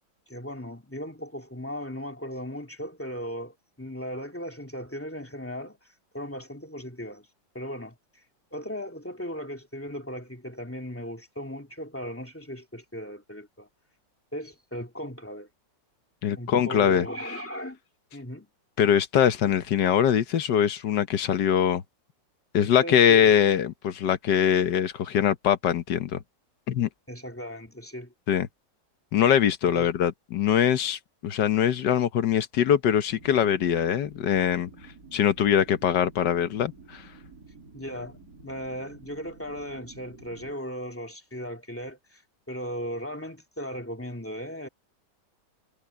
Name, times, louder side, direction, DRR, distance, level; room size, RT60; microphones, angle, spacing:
voice 1, 0.3-5.8 6.1-7.3 7.5-8.0 8.5-13.7 14.3-15.5 16.3-17.8 18.1-18.5 19.4-19.5 22.6-23.3 27.1-28.1 29.7-29.9 37.7-42.2 42.5-44.7, equal, 5° left, 2.3 m, -37 dB
voice 2, 16.2-17.1 18.8-21.8 22.5-26.2 26.7-26.9 28.3-28.5 29.1-34.7 35.1-37.0, left 9 dB, 75° left, 1.6 m, -23 dB
sound 1, 33.1-40.5, right 3 dB, 55° right, 4.9 m, -50 dB
omnidirectional pair, 1.9 m